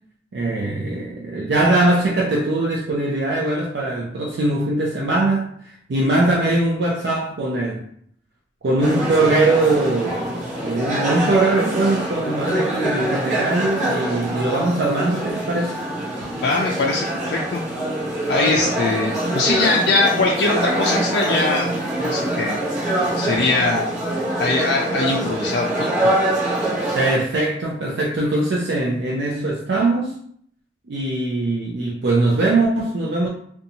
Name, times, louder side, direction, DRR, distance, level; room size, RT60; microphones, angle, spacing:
voice 1, 0.3-5.5 5.9-7.8 8.6-15.8 26.9-30.2 30.9-33.3, right 2 dB, 80° right, -2 dB, 0.4 m, -21 dB
sound 1, 8.8-27.2, right 1 dB, 45° right, 0.7 m, -24 dB
voice 2, 16.4-17.6 18.3-21.7 22.0-22.6 23.2-23.9 24.4-25.9, left 3 dB, 70° left, -2 dB, 0.3 m, -21 dB
2.6 x 2.2 x 2.7 m, 0.65 s
head